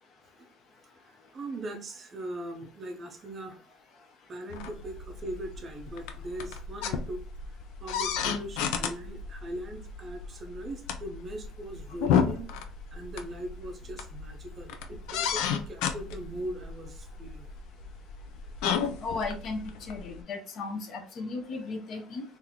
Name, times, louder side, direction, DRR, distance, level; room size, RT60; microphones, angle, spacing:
voice 1, 1.0-3.8 4.3-7.2 7.8-12.6 12.9-17.5, right 1 dB, 25° right, 3 dB, 0.5 m, -40 dB
sound 1, 4.5-20.2, left 7 dB, 90° left, 0.4 m, -33 dB
voice 2, 19.0-19.6 19.9-22.2, left 3 dB, 40° left, 4 dB, 0.6 m, -35 dB
3.7 x 2.5 x 2.9 m, 0.38 s
cardioid pair, 175°, 0 cm